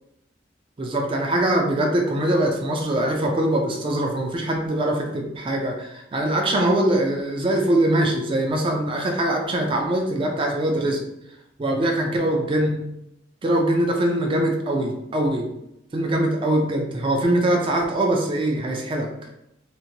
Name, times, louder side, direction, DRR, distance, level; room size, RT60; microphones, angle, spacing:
voice 1, 0.8-11.0 11.6-12.7 13.4-15.5 15.9-19.1, right 1 dB, 30° right, 1 dB, 0.4 m, -22 dB
2.9 x 2.1 x 2.7 m, 0.83 s
head